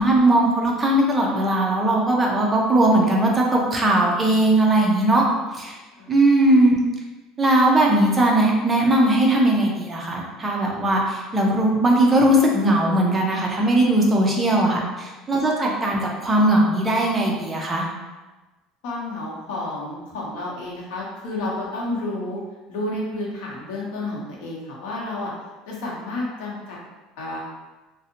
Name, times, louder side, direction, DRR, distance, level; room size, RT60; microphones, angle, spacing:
voice 1, 0.0-5.2 5.5-5.8 6.1-6.8 7.4-17.8, right 1 dB, 10° right, -2 dB, 0.4 m, -19 dB
voice 2, 14.6-14.9 18.8-22.4 22.7-25.3 25.7-26.8 27.2-27.4, left 2 dB, 75° left, -4 dB, 0.8 m, -30 dB
2.6 x 2.0 x 2.7 m, 1.2 s
cardioid pair, 175°, 0 cm